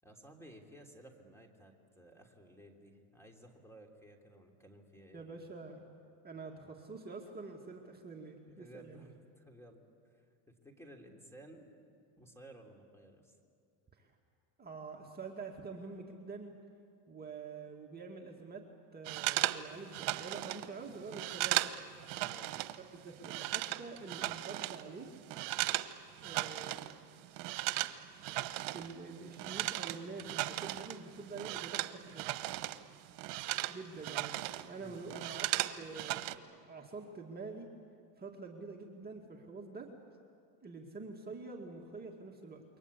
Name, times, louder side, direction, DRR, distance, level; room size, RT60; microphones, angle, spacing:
voice 1, 0.0-5.4 8.5-11.7 12.2-13.3 22.2-22.5 34.8-35.0, right 1 dB, 5° left, 3 dB, 3.1 m, -56 dB
voice 2, 5.1-5.9 6.2-9.1 13.9-14.1 14.6-16.6 17.1-18.7 18.9-21.6 22.9-25.1 26.2-26.9 28.6-32.3 33.7-34.3 34.7-37.7 38.2-39.9 40.6-42.6, right 4 dB, 20° right, 0 dB, 2.3 m, -46 dB
sound 1, 19.0-22.8 23.0-25.9 26.2-26.9 27.2-32.8 33.1-34.7 35.0-36.3, right 17 dB, 75° right, 1.1 m, -36 dB
28.5 x 23.5 x 8.5 m, 2.4 s
cardioid pair, 125°, 45 cm